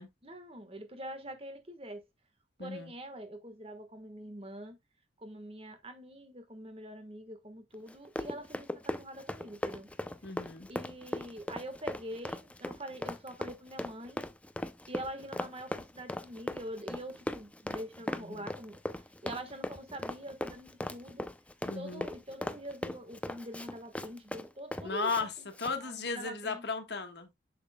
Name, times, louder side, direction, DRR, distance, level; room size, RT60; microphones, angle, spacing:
voice 1, 0.2-2.0 2.6-4.8 5.2-9.9 10.7-14.3 14.9-18.8 19.2-21.3 21.6-25.5 25.8-26.6, right 1 dB, 30° right, 1.4 m, -44 dB
voice 2, 2.6-2.9 10.2-10.7 18.3-18.5 21.7-22.0 24.8-25.3 25.6-27.3, left 4 dB, 60° left, 1.5 m, -35 dB
Run, 7.9-25.2 25.5-25.7, left 1 dB, 5° left, 0.5 m, -38 dB
7.2 x 7.0 x 2.2 m
head